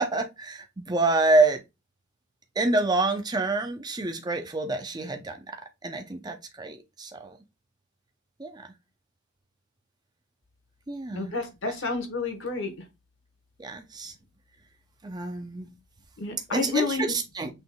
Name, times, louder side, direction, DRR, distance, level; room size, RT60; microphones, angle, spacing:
voice 1, 0.0-1.6 2.6-7.4 8.4-8.7 10.9-11.3 13.6-14.1 15.0-15.7 16.5-17.5, right 2 dB, 20° right, 0.5 m, -27 dB
voice 2, 11.1-12.7 16.2-17.0, left 4 dB, 55° left, 1.1 m, -29 dB
6.1 x 3.4 x 2.2 m
head